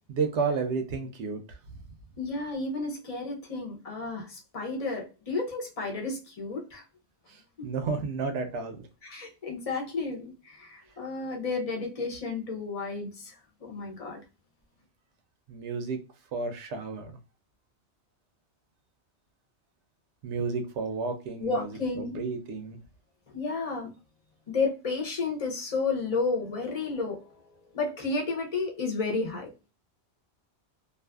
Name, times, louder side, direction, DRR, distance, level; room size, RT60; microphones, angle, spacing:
voice 1, 0.1-1.6 7.3-8.9 15.5-16.0 16.3-17.2 20.2-22.8, right 4 dB, 85° right, 7 dB, 0.9 m, -32 dB
voice 2, 2.2-6.8 9.0-14.2 21.4-22.3 23.3-23.9 24.5-29.5, left 3 dB, 40° left, 0 dB, 0.7 m, -32 dB
2.5 x 2.4 x 2.3 m, 0.30 s
omnidirectional pair, 1.1 m